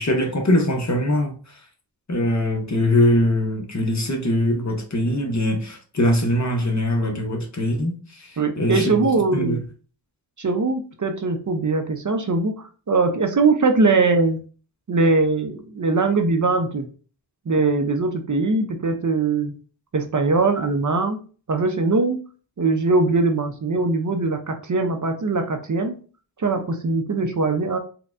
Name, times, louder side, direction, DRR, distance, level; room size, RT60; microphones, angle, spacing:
voice 1, 0.0-1.6 2.1-8.8 9.3-9.6, left 1 dB, 40° left, 0.9 m, -22 dB
voice 2, 8.4-9.6 10.4-14.4 14.9-16.9 17.5-19.5 19.9-21.2 21.5-22.2 22.6-26.0 26.4-27.8, right 3 dB, 45° right, 0.6 m, -21 dB
4.2 x 2.2 x 2.5 m
wide cardioid pair, 75°, 42 cm